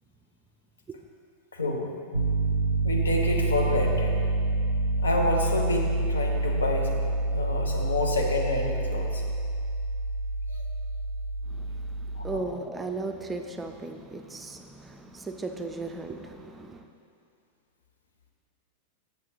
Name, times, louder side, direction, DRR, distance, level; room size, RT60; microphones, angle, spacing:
voice 1, 1.5-1.9 2.8-4.1 5.0-6.9 7.3-9.2 10.5-10.6 12.1-12.4, left 2 dB, 70° left, 1 dB, 0.9 m, -28 dB
Piano, 2.1-12.4, right 2 dB, 85° right, 0.4 m, -27 dB
voice 2, 11.5-16.9, right 3 dB, 15° right, 5 dB, 0.4 m, -37 dB
7.6 x 7.2 x 3.9 m, 2.4 s
figure-of-eight pair, 90°, 0 cm